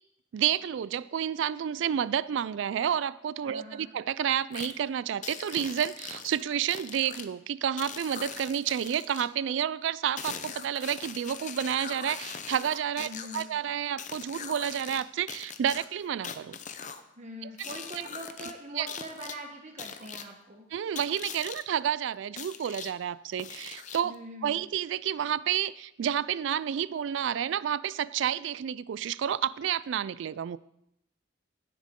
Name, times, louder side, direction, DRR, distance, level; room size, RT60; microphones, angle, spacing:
voice 1, 0.3-16.6 17.4-17.5 18.8-18.9 20.7-24.1 24.4-30.6, right 9 dB, 65° right, 19 dB, 0.3 m, -30 dB
voice 2, 3.4-3.9 13.0-13.5 17.2-20.7 24.0-24.6, right 1 dB, 35° right, 2 dB, 1.0 m, -43 dB
sound 1, 4.5-4.7 5.2-7.2 7.8-9.3 10.2-13.4 14.0-15.0 15.3-17.0 17.6-18.5 18.9-19.3 19.8-20.2 20.9-21.6 22.4-22.9 23.4-24.1, left 7 dB, 40° left, 0.6 m, -41 dB
16.5 x 7.5 x 3.7 m, 0.83 s
head